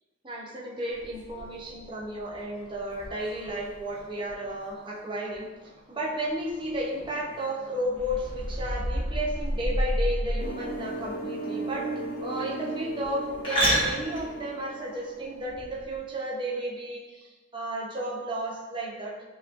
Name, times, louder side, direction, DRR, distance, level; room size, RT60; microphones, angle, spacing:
voice 1, 0.2-11.9 12.2-19.2, right 1 dB, 25° right, -4 dB, 0.6 m, -33 dB
sound 1, 0.9-16.0, right 1 dB, 25° left, 1.2 m, -36 dB
sound 2, 8.0-10.7, equal, 80° right, 0.8 m, -29 dB
sound 3, 10.4-15.5, right 2 dB, 45° left, 0.6 m, -36 dB
5.6 x 3.0 x 2.4 m, 1.2 s
head